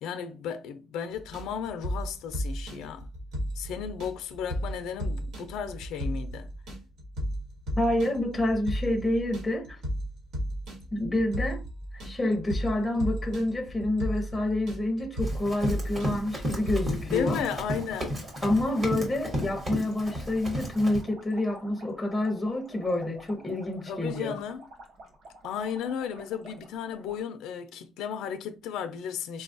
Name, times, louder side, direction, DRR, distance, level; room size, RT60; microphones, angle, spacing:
voice 1, 0.0-3.1 3.6-6.5 17.0-18.2 23.8-24.6 25.4-29.4, left 8 dB, 90° left, 0.4 m, -34 dB
sound 1, 1.1-17.4, equal, 90° right, 1.5 m, -34 dB
voice 2, 7.8-9.8 10.9-11.6 11.9-17.4 18.4-24.3, left 1 dB, 10° left, 0.6 m, -28 dB
Run, 15.2-21.0, equal, 25° right, 1.0 m, -33 dB
sound 2, 17.2-27.2, right 2 dB, 60° right, 0.9 m, -50 dB
4.0 x 2.3 x 2.5 m
cardioid pair, 180°, 0 cm